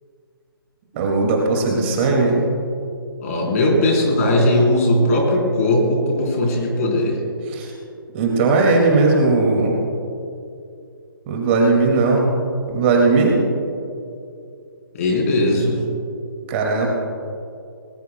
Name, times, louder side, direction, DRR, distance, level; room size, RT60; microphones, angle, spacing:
voice 1, 0.9-2.5 7.5-7.7 8.1-9.8 11.3-13.4 16.5-16.9, right 3 dB, 30° right, 0 dB, 2.3 m, -18 dB
voice 2, 3.2-7.2 14.9-15.8, left 1 dB, 40° left, -1 dB, 3.9 m, -18 dB
20.5 x 19.5 x 2.3 m, 2.5 s
figure-of-eight pair, 135°, 12 cm